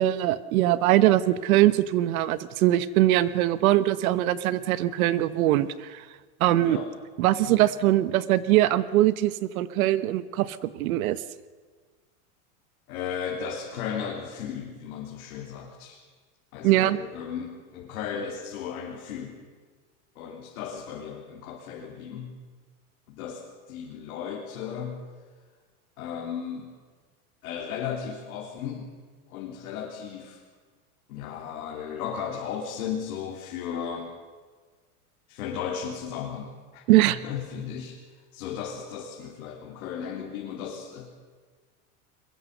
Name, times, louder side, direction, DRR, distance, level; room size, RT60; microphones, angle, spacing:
voice 1, 0.0-6.1 6.4-6.8 7.2-11.2 16.6-17.0 36.9-37.2, right 14 dB, 70° right, 15 dB, 1.3 m, -22 dB
voice 2, 6.4-6.9 7.4-7.6 12.9-16.0 16.5-19.4 20.2-22.3 23.1-25.0 26.0-26.8 27.4-29.0 29.3-30.4 31.1-34.1 35.3-38.0 38.3-41.1, left 7 dB, 70° left, -2 dB, 3.6 m, -35 dB
22.5 x 22.0 x 6.8 m, 1.4 s
supercardioid pair, 150°, 44 cm